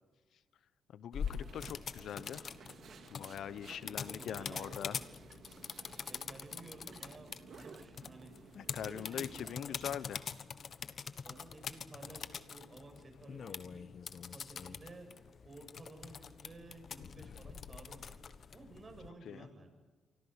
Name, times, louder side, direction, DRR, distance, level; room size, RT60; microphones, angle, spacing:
voice 1, 0.9-2.5 3.1-5.0 8.5-10.3 19.2-19.5, left 9 dB, 70° left, 17 dB, 0.7 m, -43 dB
sound 1, 1.1-19.1, left 6 dB, 50° left, 1.4 m, -45 dB
sound 2, 1.2-9.6, right 6 dB, 60° right, 2.1 m, -56 dB
voice 2, 3.8-5.1 6.1-9.8 11.2-13.9 14.3-15.1 15.4-18.1 18.5-19.7, right 2 dB, 30° right, 4 dB, 8.0 m, -54 dB
28.5 x 24.5 x 6.4 m, 1.4 s
cardioid pair, 90°, 0 cm